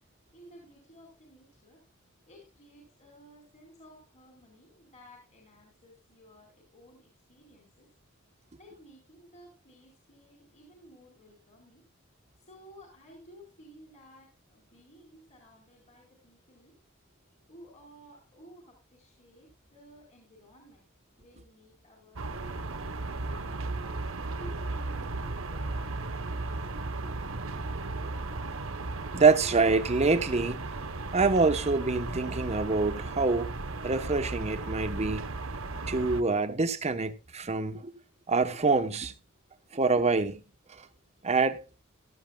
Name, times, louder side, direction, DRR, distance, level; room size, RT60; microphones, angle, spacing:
voice 1, 0.3-1.8 2.3-7.9 8.3-11.8 12.4-16.8 17.5-20.8 21.2-24.0 24.3-27.3, equal, 35° left, 4.3 m, -55 dB
sound 1, 22.2-36.2, right 2 dB, 75° right, 1.2 m, -35 dB
voice 2, 29.1-30.6 31.1-33.5 33.8-35.3 35.9-37.9 38.3-39.1 39.7-40.4 40.7-40.9 41.2-41.6, right 4 dB, 30° right, 1.0 m, -26 dB
16.0 x 13.0 x 2.3 m
head